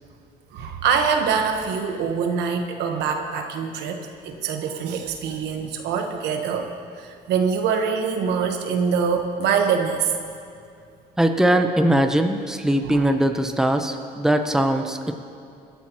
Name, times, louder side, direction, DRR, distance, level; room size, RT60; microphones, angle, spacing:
voice 1, 0.5-6.7 7.0-10.1 12.8-13.1, right 6 dB, 85° right, 4 dB, 1.3 m, -24 dB
voice 2, 11.2-15.1, right 1 dB, 5° right, 5 dB, 0.8 m, -20 dB
23.0 x 12.0 x 3.1 m, 2.4 s
cardioid pair, 110°, 17 cm